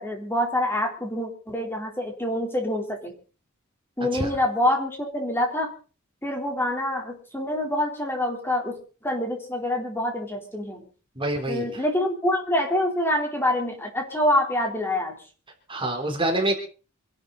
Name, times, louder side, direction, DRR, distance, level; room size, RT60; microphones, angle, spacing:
voice 1, 0.0-3.1 4.0-5.7 6.2-8.8 9.0-10.8 11.5-15.1, left 1 dB, 10° left, 1 dB, 3.8 m, -26 dB
voice 2, 11.2-11.8 15.7-16.5, right 1 dB, 25° right, 3 dB, 3.6 m, -26 dB
26.5 x 12.5 x 4.1 m, 0.38 s
head